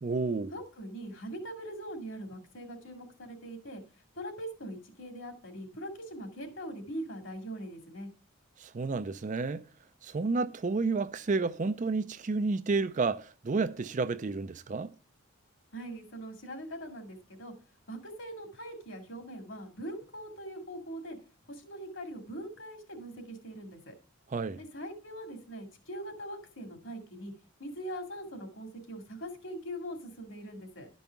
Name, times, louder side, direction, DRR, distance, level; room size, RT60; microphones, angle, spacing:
voice 1, 0.0-0.5 8.6-9.6 10.0-14.9 24.3-24.6, right 3 dB, 35° right, 0.4 m, -31 dB
voice 2, 0.5-3.8 4.2-8.1 15.7-17.5 17.9-21.2 21.5-23.9 24.6-27.3 27.6-30.9, right 1 dB, 60° left, 2.3 m, -42 dB
12.0 x 5.3 x 5.8 m
head